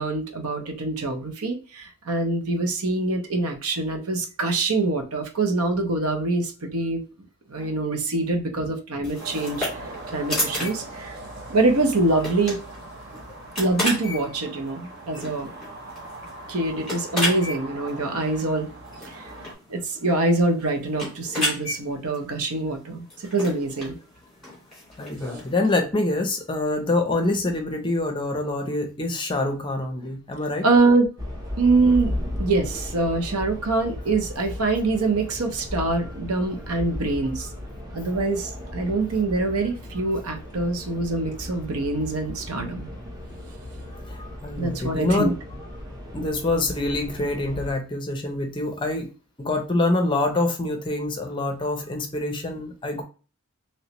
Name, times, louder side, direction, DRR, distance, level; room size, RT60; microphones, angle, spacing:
voice 1, 0.0-7.0 7.5-9.7 10.1-11.2 11.5-12.6 13.6-15.5 16.5-18.7 19.0-19.3 19.7-24.0 30.6-31.1 31.6-32.1 32.4-37.5 37.9-42.9 44.6-45.3, right 2 dB, 85° right, 5 dB, 0.7 m, -24 dB
sound 1, 9.0-25.5, left 1 dB, ahead, 1.7 m, -33 dB
sound 2, 9.2-19.5, right 2 dB, 50° right, 0.9 m, -40 dB
voice 2, 25.0-30.7 44.1-45.3 46.1-49.1 49.4-53.0, left 2 dB, 20° left, 4 dB, 0.5 m, -25 dB
sound 3, 31.2-47.7, left 1 dB, 15° right, 0.6 m, -36 dB
3.1 x 3.0 x 2.9 m, 0.34 s
head